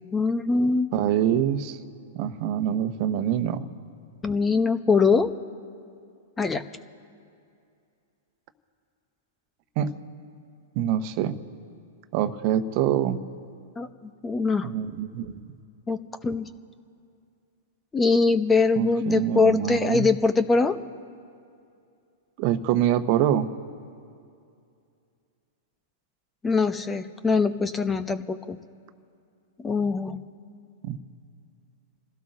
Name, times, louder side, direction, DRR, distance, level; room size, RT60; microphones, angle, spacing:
voice 1, 0.1-0.9 4.2-5.3 6.4-6.6 13.8-14.7 15.9-16.5 17.9-20.8 26.4-28.6 29.6-30.2, left 4 dB, 15° left, 11 dB, 0.7 m, -23 dB
voice 2, 0.9-1.8 2.1-3.6 9.8-9.9 10.7-11.4 12.1-13.2 14.6-15.4 18.8-20.1 22.4-23.5 30.8-31.0, right 10 dB, 45° right, 9 dB, 1.1 m, -25 dB
29.0 x 16.5 x 2.6 m, 2.5 s
hypercardioid pair, 105°, 0 cm